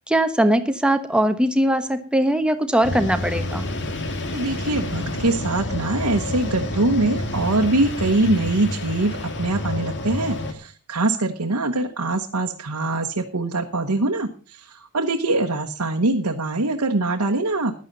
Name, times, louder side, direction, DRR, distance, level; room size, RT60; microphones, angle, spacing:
voice 1, 0.1-3.6, right 1 dB, 5° right, 8 dB, 1.1 m, -20 dB
sound 1, 2.8-10.5, left 1 dB, 55° left, 1.9 m, -29 dB
voice 2, 4.3-17.7, right 2 dB, 90° right, 2 dB, 1.2 m, -23 dB
14.5 x 10.5 x 4.0 m, 0.37 s
head